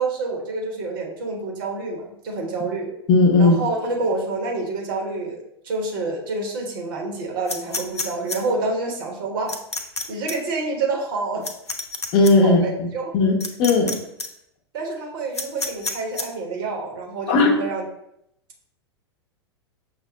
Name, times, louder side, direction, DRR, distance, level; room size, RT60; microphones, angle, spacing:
voice 1, 0.0-2.9 3.4-9.6 10.1-11.4 12.4-13.1 14.7-17.8, right 3 dB, 55° right, 0 dB, 1.1 m, -28 dB
voice 2, 3.1-3.6 12.1-12.9 13.1-13.9 17.3-17.5, left 3 dB, 40° left, 1 dB, 0.8 m, -16 dB
sound 1, 7.5-8.4 9.5-10.0 10.3-10.4 11.4-12.3 13.4-13.9 14.2-14.3 15.3-16.2, left 3 dB, 85° left, 0.5 m, -28 dB
5.8 x 2.1 x 3.9 m, 0.77 s
figure-of-eight pair, 90°, 14 cm